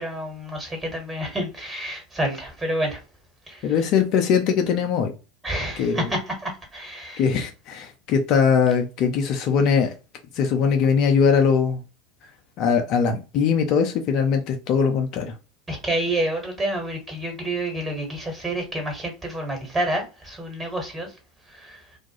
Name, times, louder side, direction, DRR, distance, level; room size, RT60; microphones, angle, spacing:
voice 1, 0.0-3.0 3.5-3.8 5.4-7.4 15.7-21.2 21.5-22.0, right 1 dB, 20° right, 1.4 m, -29 dB
voice 2, 3.6-5.1 5.8-6.0 7.2-9.9 10.4-11.8 12.6-15.3, left 6 dB, 50° left, 0.5 m, -21 dB
2.4 x 2.2 x 2.8 m
figure-of-eight pair, 75°, 0 cm